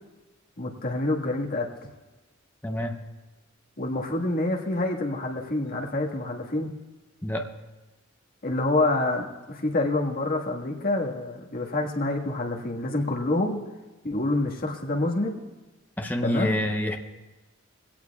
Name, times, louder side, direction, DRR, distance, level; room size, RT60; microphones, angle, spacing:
voice 1, 0.6-1.7 3.8-6.7 8.4-13.6 14.0-15.4 16.2-16.6, left 2 dB, 45° left, -1 dB, 1.7 m, -27 dB
voice 2, 2.6-3.0 7.2-7.5 16.0-17.0, equal, 10° left, 3 dB, 0.8 m, -27 dB
22.0 x 17.0 x 2.4 m, 1.1 s
head